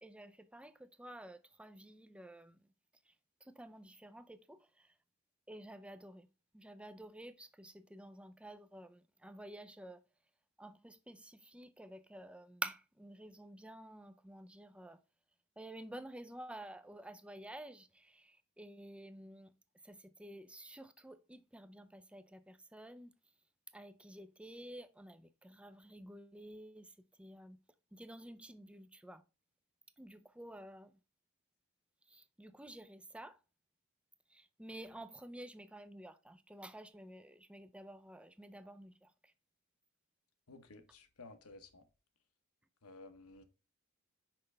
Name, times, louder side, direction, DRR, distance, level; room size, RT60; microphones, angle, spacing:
voice 1, 0.0-2.7 3.0-3.1 3.4-5.0 5.5-6.3 6.5-10.0 10.6-15.0 15.6-19.5 19.8-23.1 23.7-27.6 27.9-29.2 30.0-31.0 32.1-33.4 34.3-39.3, right 1 dB, 5° right, 0.4 m, -51 dB
voice 2, 40.5-41.8 42.8-43.4, left 3 dB, 90° left, 1.1 m, -54 dB
5.9 x 5.3 x 3.3 m
head